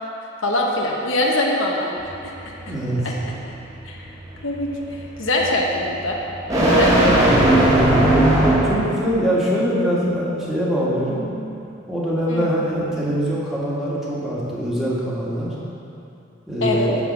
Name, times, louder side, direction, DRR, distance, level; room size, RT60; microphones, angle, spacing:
voice 1, 0.4-1.9 2.2-2.3 3.0-3.1 3.8-4.0 4.4-6.2 6.6-7.0 12.3-12.5 16.6-16.9, left 2 dB, 85° left, -1 dB, 1.1 m, -22 dB
sound 1, 2.0-8.9, right 1 dB, 20° right, 1.5 m, -19 dB
voice 2, 2.7-3.0 7.1-11.2 11.9-15.5 16.5-17.0, equal, ahead, -8 dB, 1.6 m, -23 dB
9.7 x 4.0 x 7.2 m, 2.7 s
head